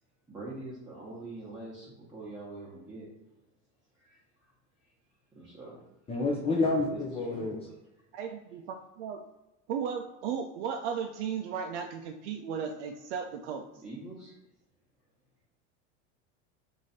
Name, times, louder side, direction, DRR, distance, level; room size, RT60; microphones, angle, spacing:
voice 1, 0.3-3.1 4.0-4.2 5.3-5.9 6.9-7.0 7.3-7.6 13.8-14.3, right 2 dB, 10° right, -8 dB, 1.0 m, -44 dB
voice 2, 6.1-7.6, left 3 dB, 15° left, 0 dB, 0.5 m, -28 dB
voice 3, 8.1-9.2 9.7-13.8, right 7 dB, 80° right, 3 dB, 0.5 m, -35 dB
3.1 x 2.7 x 4.0 m, 0.95 s
supercardioid pair, 115°, 34 cm